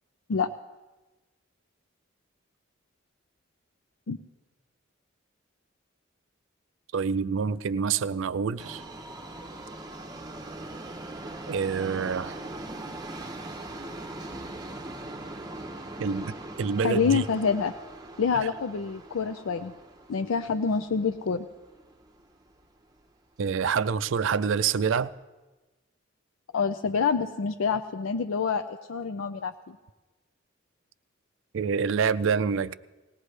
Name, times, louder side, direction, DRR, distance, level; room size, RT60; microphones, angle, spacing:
voice 1, 6.9-8.8 11.5-12.4 16.0-17.2 18.3-18.5 23.4-25.1 31.5-32.7, right 6 dB, 70° right, 0.4 m, -27 dB
Subway metro underground, 8.6-22.7 23.0-23.1 23.9-24.0 24.3-24.4 25.0-25.1, right 2 dB, 20° right, 0.8 m, -41 dB
voice 2, 16.8-17.7 18.2-19.7 20.1-21.5 26.5-29.8, left 5 dB, 80° left, 0.5 m, -27 dB
19.5 x 17.5 x 3.3 m
head